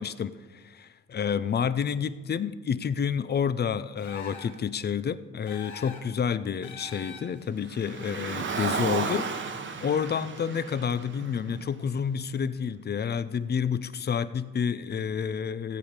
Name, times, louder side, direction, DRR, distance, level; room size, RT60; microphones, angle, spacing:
voice 1, 0.0-9.3 9.8-15.8, left 7 dB, 35° left, 0.6 m, -29 dB
sound 1, 4.0-4.7 5.5-6.2 6.6-7.5, left 5 dB, 75° left, 2.3 m, -44 dB
Car, 7.6-12.0, right 5 dB, 40° right, 1.0 m, -33 dB
16.0 x 8.0 x 5.2 m
cardioid pair, 90°, 30 cm